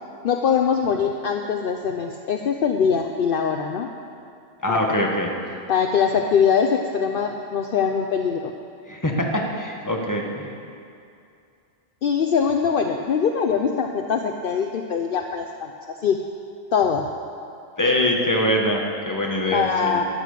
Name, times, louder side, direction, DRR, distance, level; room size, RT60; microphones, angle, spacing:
voice 1, 0.2-3.9 4.7-4.9 5.7-8.5 12.0-15.7 16.0-16.2 16.7-17.1 19.5-20.1, left 6 dB, 60° left, 4 dB, 0.8 m, -22 dB
voice 2, 4.6-5.3 8.9-10.5 17.8-20.0, left 1 dB, 15° left, 0 dB, 1.5 m, -23 dB
13.5 x 10.0 x 6.7 m, 2.5 s
omnidirectional pair, 1.1 m